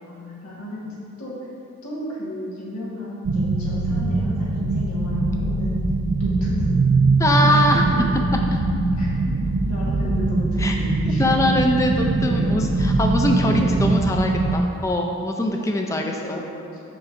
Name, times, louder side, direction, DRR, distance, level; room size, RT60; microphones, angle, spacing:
voice 1, 0.0-0.9 1.2-1.4 1.8-5.8 6.2-6.7 7.4-8.1 9.0-11.6 12.2-12.6 13.4-13.7 15.4-16.8, left 1 dB, 90° left, -7 dB, 1.4 m, -35 dB
sound 1, 3.2-14.6, right 3 dB, 60° right, 0.4 m, -21 dB
voice 2, 7.2-7.9 8.5-8.6 10.6-10.8 11.2-16.5, left 1 dB, 15° left, 2 dB, 0.3 m, -22 dB
6.9 x 5.8 x 2.5 m, 2.4 s
head